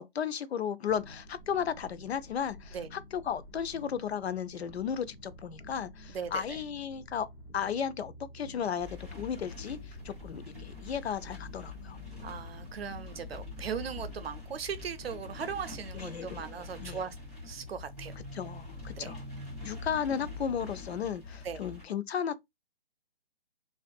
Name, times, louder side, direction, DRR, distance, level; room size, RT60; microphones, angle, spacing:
voice 1, 0.0-7.3 7.5-12.0 15.9-16.4 16.8-17.0 18.3-19.2 19.6-22.5, left 8 dB, 85° left, 0.5 m, -34 dB
sound 1, 0.8-16.1, equal, 60° left, 0.8 m, -50 dB
voice 2, 6.1-6.6 12.2-17.1 17.4-18.1 19.0-19.1 21.4-21.6, right 7 dB, 70° right, 0.6 m, -38 dB
sound 2, 8.8-21.9, left 3 dB, ahead, 1.4 m, -44 dB
2.5 x 2.4 x 2.2 m
hypercardioid pair, 175°, 31 cm